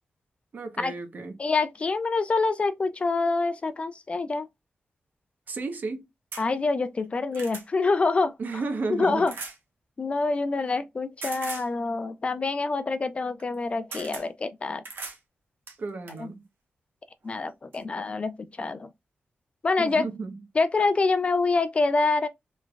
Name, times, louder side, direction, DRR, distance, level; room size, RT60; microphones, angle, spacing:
voice 1, 0.5-1.3 5.5-6.1 8.4-9.3 10.5-10.7 15.8-16.4 19.8-20.4, right 3 dB, 55° right, 0.7 m, -33 dB
voice 2, 1.4-4.5 6.4-8.3 8.9-9.3 10.0-14.8 16.2-16.3 17.2-18.9 19.6-20.0 20.6-22.3, left 3 dB, 35° left, 0.3 m, -26 dB
sound 1, 6.3-6.5 7.0-7.7 9.3-9.6 11.2-11.7 13.4-13.5 13.9-14.3 14.8-15.2 15.7-16.2 17.2-17.3 17.7-17.8, right 4 dB, 85° right, 1.0 m, -39 dB
3.2 x 3.0 x 2.3 m
wide cardioid pair, 165°, 4 cm